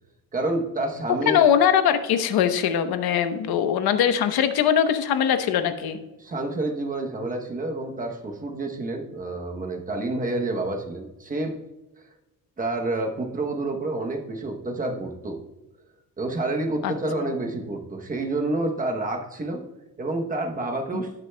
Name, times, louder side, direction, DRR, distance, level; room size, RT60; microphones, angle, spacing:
voice 1, 0.3-1.4 6.2-11.5 12.6-15.4 16.2-19.7 20.0-21.1, right 2 dB, 20° right, 3 dB, 0.9 m, -28 dB
voice 2, 1.3-6.0 16.8-16.9 17.2-17.3 20.9-21.0, left 9 dB, 85° left, 9 dB, 0.9 m, -21 dB
18.5 x 6.5 x 2.2 m, 1.0 s
cardioid pair, 180°, 36 cm